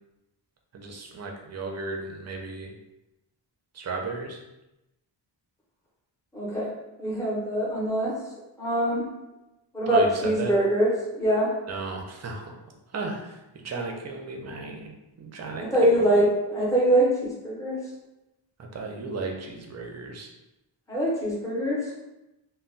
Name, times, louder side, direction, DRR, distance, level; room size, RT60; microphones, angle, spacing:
voice 1, 0.7-2.7 3.7-4.4 9.9-10.5 11.7-12.5 12.9-16.1 18.7-20.3, right 3 dB, 40° right, 1 dB, 0.4 m, -35 dB
voice 2, 6.3-6.7 7.0-8.2 8.6-9.0 9.7-11.5 15.6-17.8 20.9-21.9, right 1 dB, 5° left, -6 dB, 0.6 m, -23 dB
2.1 x 2.1 x 3.7 m, 0.95 s
wide cardioid pair, 165°, 45 cm